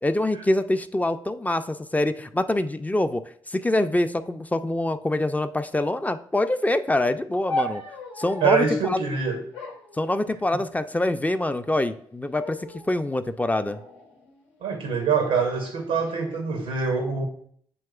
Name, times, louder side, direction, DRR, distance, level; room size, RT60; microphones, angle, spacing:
voice 1, 0.0-3.2 3.5-7.8 8.2-9.0 10.0-12.6 12.9-13.8, left 1 dB, 15° left, 9 dB, 0.3 m, -25 dB
sound 1, 7.5-8.7 9.5-10.7 11.5-12.0 12.4-12.9 13.6-14.9 15.7-16.1, left 1 dB, 85° left, 0.7 m, -36 dB
voice 2, 8.4-9.4 14.6-17.3, right 5 dB, 80° right, 3 dB, 0.6 m, -24 dB
7.7 x 2.9 x 2.3 m, 0.62 s
hypercardioid pair, 45°, 11 cm